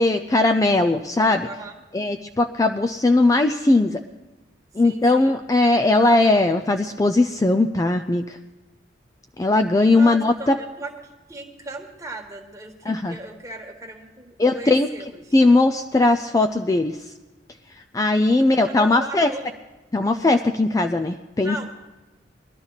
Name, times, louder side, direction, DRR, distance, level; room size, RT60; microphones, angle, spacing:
voice 1, 0.0-1.5 1.9-4.0 4.8-8.3 9.4-10.6 12.9-13.2 14.4-14.9 15.3-16.9 17.9-19.3 19.9-21.6, left 2 dB, 20° left, 7 dB, 0.4 m, -19 dB
voice 2, 0.7-1.7 4.8-5.3 9.9-15.4 18.4-19.6 21.4-21.7, right 2 dB, 20° right, 2 dB, 1.5 m, -38 dB
20.5 x 12.0 x 4.0 m, 1.1 s
head